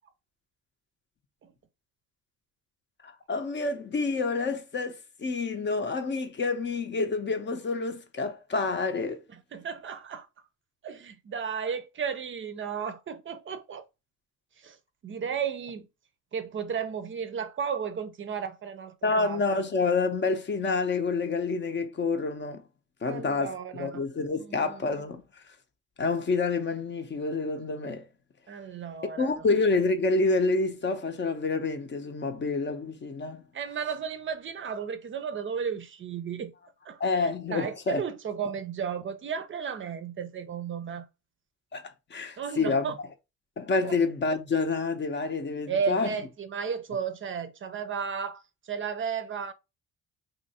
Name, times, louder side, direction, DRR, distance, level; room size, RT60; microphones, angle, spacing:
voice 1, 3.0-9.2 19.0-22.6 23.0-25.2 26.0-28.1 29.2-33.5 37.0-38.0 41.7-42.9 43.6-46.1, left 3 dB, 35° left, 0.6 m, -28 dB
voice 2, 9.3-10.3 10.8-13.8 14.6-14.8 15.0-15.9 16.3-19.4 23.0-24.0 24.3-24.8 28.5-29.4 33.5-36.5 36.8-41.1 42.4-43.0 43.8-43.9 45.7-49.5, right 7 dB, 40° right, 0.5 m, -34 dB
2.7 x 2.5 x 4.0 m
cardioid pair, 100°, 31 cm